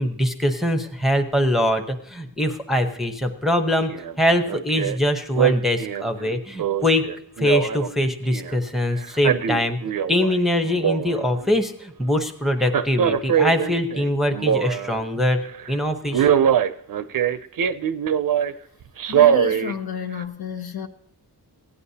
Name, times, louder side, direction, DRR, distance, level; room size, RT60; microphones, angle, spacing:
voice 1, 0.0-3.9 4.2-7.0 7.4-9.8 10.1-15.4 15.7-16.3, left 1 dB, ahead, 0.8 m, -22 dB
Male speech man speaking, 3.9-4.1 4.5-5.0 5.4-8.6 9.0-10.4 10.6-11.5 12.6-15.0 15.4-15.7 16.1-18.5 19.0-19.7 20.2-20.3, right 9 dB, 60° right, 0.5 m, -22 dB
voice 2, 19.0-20.9, left 8 dB, 70° left, 1.1 m, -31 dB
16.0 x 9.7 x 2.8 m
wide cardioid pair, 170°, 38 cm